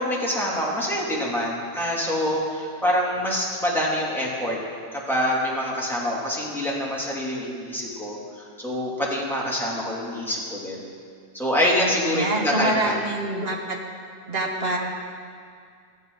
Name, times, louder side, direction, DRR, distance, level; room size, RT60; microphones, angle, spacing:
voice 1, 0.0-4.6 4.9-8.2 8.6-10.8 11.3-12.9, equal, ahead, -6 dB, 2.6 m, -25 dB
voice 2, 12.0-13.8 14.3-14.8, right 2 dB, 60° right, 0 dB, 1.9 m, -26 dB
15.5 x 14.0 x 4.0 m, 2.2 s
omnidirectional pair, 1.2 m